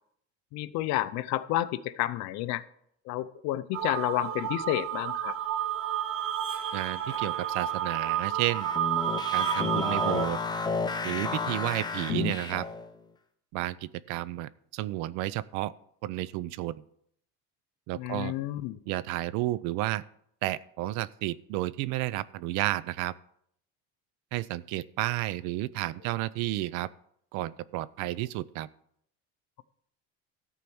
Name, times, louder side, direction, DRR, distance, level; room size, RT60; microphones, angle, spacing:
voice 1, 0.5-2.6 3.1-5.4 17.9-18.8, left 15 dB, 65° left, 15 dB, 0.7 m, -30 dB
sound 1, 3.7-10.3, right 9 dB, 45° right, 1.4 m, -30 dB
voice 2, 6.7-8.7 9.3-10.4 11.0-12.7 13.5-15.7 16.0-16.8 17.9-18.3 18.9-20.0 20.4-23.1 24.3-26.9 27.3-28.7, right 16 dB, 70° right, 19 dB, 0.6 m, -32 dB
sound 2, 8.4-12.9, left 4 dB, 15° left, 0.8 m, -32 dB
13.5 x 4.7 x 7.0 m, 0.69 s
cardioid pair, 135°, 31 cm